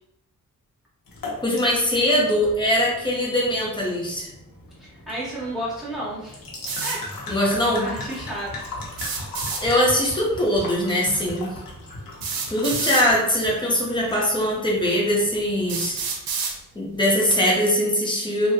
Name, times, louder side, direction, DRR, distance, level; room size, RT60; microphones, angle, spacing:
sound 1, 1.1-16.1, left 2 dB, 80° left, 0.9 m, -38 dB
voice 1, 1.4-4.3 7.3-7.8 9.6-11.5 12.5-16.0 16.7-18.5, equal, 15° left, -4 dB, 0.7 m, -21 dB
voice 2, 4.8-6.4 6.8-7.0 7.8-8.7, right 1 dB, ahead, -10 dB, 1.3 m, -32 dB
sound 2, 6.7-7.0 8.9-9.6 11.1-11.2 12.2-13.1 14.1-14.2 14.8-14.9 15.7-16.6, right 5 dB, 90° right, 0.6 m, -28 dB
3.4 x 2.3 x 2.8 m, 0.81 s
wide cardioid pair, 165°, 34 cm